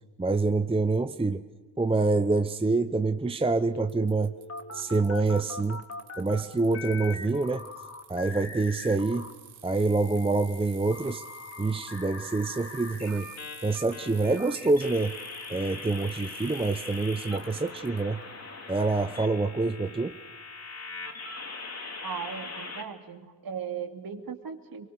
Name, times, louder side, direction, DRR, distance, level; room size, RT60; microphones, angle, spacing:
voice 1, 0.2-1.4 1.8-4.3 4.7-5.8 6.2-7.6 8.1-9.3 9.6-11.2 11.6-13.3 13.6-15.1 15.5-18.2 18.7-20.1, right 3 dB, 10° right, 10 dB, 0.8 m, -26 dB
sound 1, 3.7-6.4 6.7-9.3 9.7-22.8, left 3 dB, 30° left, 3.1 m, -41 dB
Bicycle, 3.9-18.0, right 9 dB, 75° right, 2.9 m, -52 dB
voice 2, 22.0-24.9, right 7 dB, 45° right, 6 dB, 2.9 m, -37 dB
24.0 x 24.0 x 6.5 m, 1.4 s
supercardioid pair, 65°, 48 cm